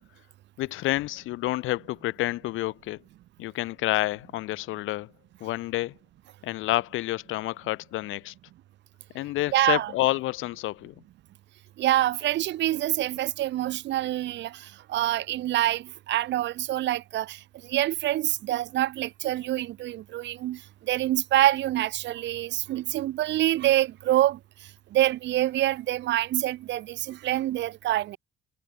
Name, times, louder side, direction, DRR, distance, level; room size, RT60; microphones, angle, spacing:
voice 1, 0.6-3.0 3.4-5.1 5.4-5.9 6.4-8.3 9.1-10.9, left 17 dB, 90° left, 1.0 m, -29 dB
voice 2, 9.5-9.9 11.8-20.6 20.9-24.4 24.9-28.2, right 14 dB, 65° right, 0.4 m, -26 dB
cardioid pair, 90°, 20 cm